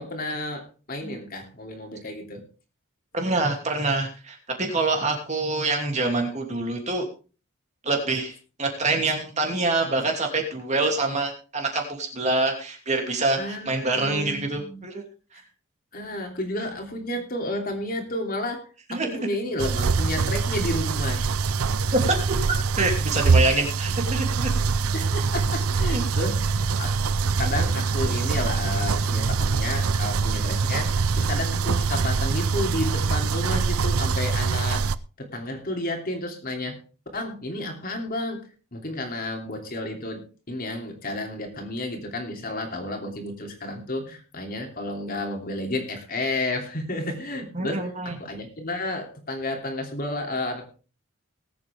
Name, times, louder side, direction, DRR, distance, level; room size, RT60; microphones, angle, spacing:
voice 1, 0.0-2.4 13.4-14.8 15.9-21.3 24.9-27.0 27.3-34.8 35.2-36.8 37.1-38.5 38.7-40.2 40.5-50.7, left 1 dB, 40° left, 2 dB, 2.9 m, -31 dB
voice 2, 3.1-7.0 7.8-15.0 18.9-19.1 21.9-22.4 22.8-24.5 25.9-26.0 47.5-48.2, right 2 dB, 30° right, 2 dB, 2.8 m, -26 dB
sound 1, 19.6-34.9, right 4 dB, 85° right, 0.6 m, -24 dB
20.0 x 8.5 x 3.5 m, 0.36 s
head